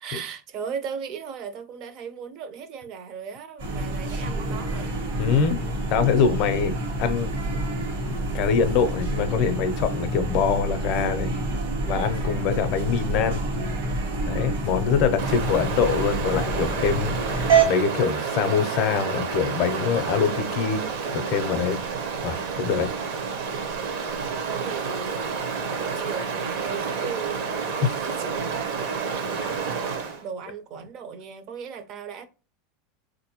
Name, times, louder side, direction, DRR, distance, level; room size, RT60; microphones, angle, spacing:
voice 1, 0.0-4.9 15.2-15.9 23.1-23.9 24.4-25.4 25.7-27.4 28.0-32.3, right 6 dB, 35° right, 0.4 m, -37 dB
sound 1, 3.6-17.7, right 3 dB, 75° right, 1.3 m, -27 dB
voice 2, 5.2-5.6 5.9-7.3 8.3-11.3 11.8-13.4 14.3-20.8 21.1-21.8 22.2-22.9 27.8-28.0 29.4-29.5, left 6 dB, 45° left, 0.5 m, -24 dB
Stream, 15.2-30.2, right 5 dB, 60° right, 0.8 m, -30 dB
3.8 x 2.6 x 2.8 m
supercardioid pair, 160°, 0 cm